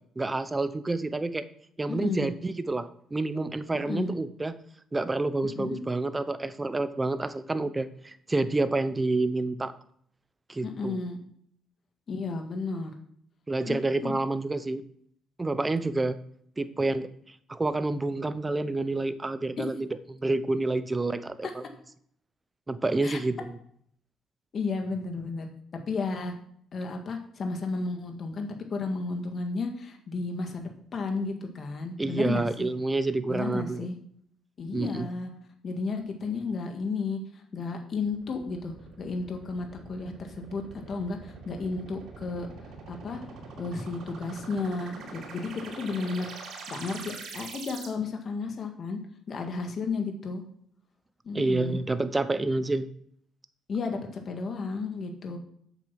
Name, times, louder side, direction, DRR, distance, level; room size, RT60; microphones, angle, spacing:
voice 1, 0.2-1.5 1.8-4.5 4.9-9.7 10.5-11.0 13.5-14.8 15.4-16.2 16.6-17.1 17.5-19.9 20.2-21.6 22.7-23.5 32.0-33.9 34.7-35.1 51.3-52.9, right 2 dB, 20° right, 13 dB, 0.9 m, -28 dB
voice 2, 1.9-2.3 3.9-4.1 5.6-5.8 10.6-11.2 12.1-12.9 13.6-13.8 14.0-14.1 19.6-19.7 23.0-23.2 24.5-25.5 25.9-26.3 26.7-32.7 33.3-34.0 34.6-35.3 35.6-37.2 37.5-40.6 40.9-42.5 42.9-43.2 43.6-46.3 46.7-49.0 49.3-50.4 51.3-51.8 53.7-55.4, left 4 dB, 50° left, 4 dB, 1.9 m, -33 dB
sound 1, 38.0-47.9, right 4 dB, 65° right, 3.9 m, -44 dB
8.1 x 7.1 x 5.9 m, 0.65 s
cardioid pair, 85°, 0 cm